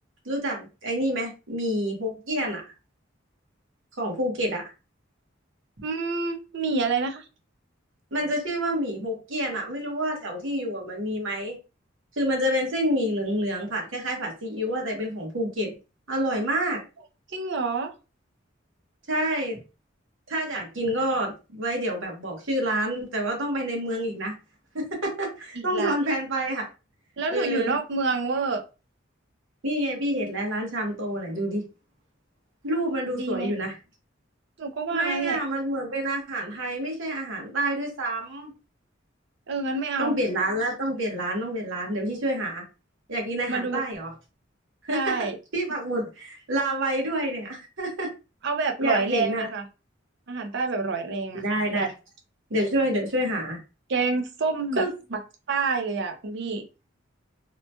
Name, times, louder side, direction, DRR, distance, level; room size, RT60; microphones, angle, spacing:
voice 1, 0.2-2.6 4.0-4.7 8.1-11.6 12.1-15.7 16.1-16.8 19.1-19.6 20.3-24.3 24.7-26.7 27.3-27.8 29.6-31.6 32.6-33.8 34.9-38.5 40.0-42.6 43.1-44.1 44.8-45.3 45.5-48.1 48.8-49.5 51.3-51.9 52.5-53.6 54.7-54.9, right 1 dB, 80° right, 0 dB, 1.1 m, -28 dB
voice 2, 5.8-7.2 17.3-17.9 25.6-25.9 27.2-28.6 33.1-33.5 34.6-35.4 39.5-40.1 43.5-43.8 44.9-45.4 48.4-49.6 50.3-51.4 51.7-51.9 53.9-54.8 55.1-55.2 55.5-56.6, right 4 dB, 60° right, 4 dB, 0.6 m, -27 dB
2.8 x 2.2 x 2.8 m, 0.30 s
head